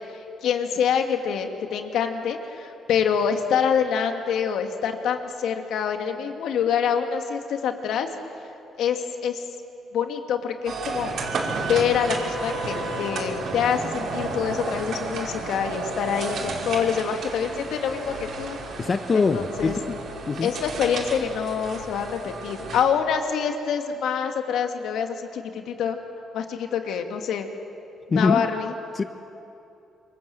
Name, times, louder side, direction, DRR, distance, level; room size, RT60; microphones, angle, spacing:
voice 1, 0.4-8.1 8.8-9.4 9.9-11.1 11.6-18.6 19.1-19.7 20.4-26.0 26.3-27.5 28.1-28.7, left 7 dB, 80° left, 5 dB, 2.4 m, -26 dB
sound 1, 10.6-22.8, right 3 dB, 65° right, 5.3 m, -32 dB
voice 2, 18.8-20.0 20.3-20.5 28.1-28.5 28.9-29.0, left 4 dB, 35° left, 8 dB, 1.0 m, -23 dB
27.5 x 24.0 x 7.8 m, 2.8 s
cardioid pair, 90°, 0 cm